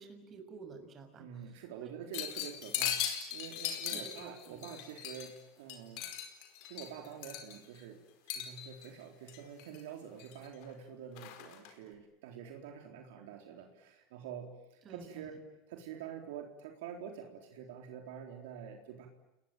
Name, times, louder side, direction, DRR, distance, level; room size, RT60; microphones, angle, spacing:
voice 1, 0.0-1.9 3.9-4.7 14.8-15.4, right 5 dB, 35° right, 6 dB, 6.5 m, -51 dB
voice 2, 1.2-6.0 6.6-8.0 8.3-15.3 15.7-19.1, right 8 dB, 80° right, 3 dB, 3.9 m, -47 dB
sound 1, 2.1-5.4 5.7-7.8 8.3-8.9 9.3-9.8 10.2-10.7 11.2-11.7, left 10 dB, 65° left, 4.8 m, -39 dB
29.5 x 21.0 x 9.2 m, 0.94 s
supercardioid pair, 115°, 0 cm